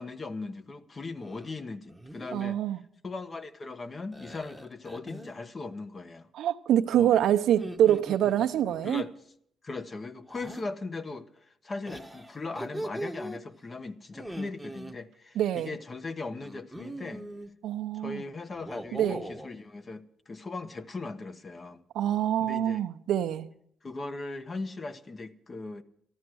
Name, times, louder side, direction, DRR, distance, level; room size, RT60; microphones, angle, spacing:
voice 1, 0.0-2.6 3.0-6.3 6.9-7.2 8.8-9.1 9.6-17.3 17.9-21.8 22.4-22.8 23.8-25.8, left 3 dB, 35° left, 1.0 m, -39 dB
sound 1, 1.2-1.5 1.9-2.4 4.1-5.4 7.4-8.8 10.3-10.7 11.9-13.4 14.1-14.9 16.4-17.5 18.5-19.5, right 1 dB, ahead, 1.1 m, -41 dB
voice 2, 2.3-2.8 6.3-9.0 15.4-15.7 17.6-18.2 18.9-19.2 21.9-23.5, right 11 dB, 80° right, 0.7 m, -25 dB
13.5 x 13.0 x 6.2 m
cardioid pair, 90°, 0 cm